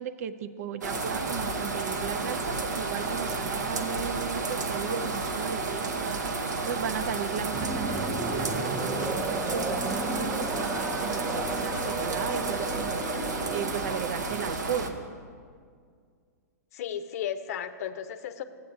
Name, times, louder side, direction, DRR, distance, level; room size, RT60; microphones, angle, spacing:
voice 1, 0.0-15.0, right 8 dB, 60° right, 13 dB, 0.5 m, -36 dB
sound 1, 0.8-14.9, right 3 dB, 85° right, 0.9 m, -31 dB
sound 2, 7.5-14.0, right 2 dB, 10° right, 0.5 m, -34 dB
voice 2, 16.7-18.4, left 9 dB, 60° left, 11 dB, 0.6 m, -34 dB
14.5 x 7.9 x 2.6 m, 2.1 s
hypercardioid pair, 120°, 9 cm